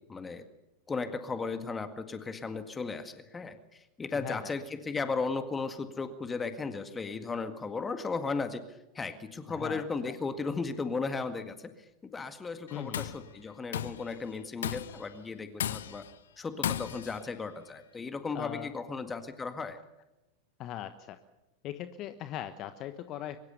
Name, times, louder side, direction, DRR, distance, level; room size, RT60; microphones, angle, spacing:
voice 1, 0.1-0.4 0.9-11.7 12.0-16.0 16.4-19.8, left 4 dB, 15° left, 10 dB, 1.9 m, -36 dB
voice 2, 4.1-4.5 9.5-10.1 12.7-13.0 18.3-18.7 20.6-21.2 21.6-23.4, left 11 dB, 35° left, 11 dB, 1.2 m, -39 dB
Tools, 12.7-13.2 13.7-14.1 14.6-15.1 15.6-16.1 16.6-17.2, left 10 dB, 60° left, 1.0 m, -35 dB
23.5 x 22.0 x 6.9 m, 0.97 s
figure-of-eight pair, 90°, 0 cm